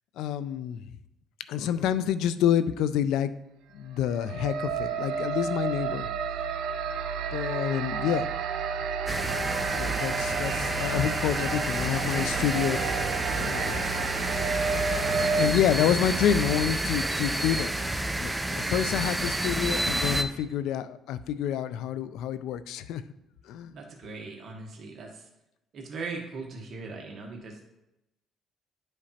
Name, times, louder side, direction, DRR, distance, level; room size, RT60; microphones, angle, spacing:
voice 1, 0.2-0.8 1.5-3.3 3.7-6.1 7.3-8.3 9.7-12.8 13.3-13.9 15.4-17.7 18.2-23.0 23.5-23.7, left 9 dB, 85° left, 14 dB, 0.3 m, -28 dB
sound 1, 3.9-15.5, right 5 dB, 85° right, 0.5 m, -31 dB
sound 2, 9.1-20.2, right 1 dB, 10° right, 0.4 m, -30 dB
voice 2, 23.7-25.3 25.7-27.6, right 4 dB, 50° right, 1 dB, 1.2 m, -39 dB
10.5 x 5.0 x 2.8 m, 0.88 s
cardioid pair, 135°, 0 cm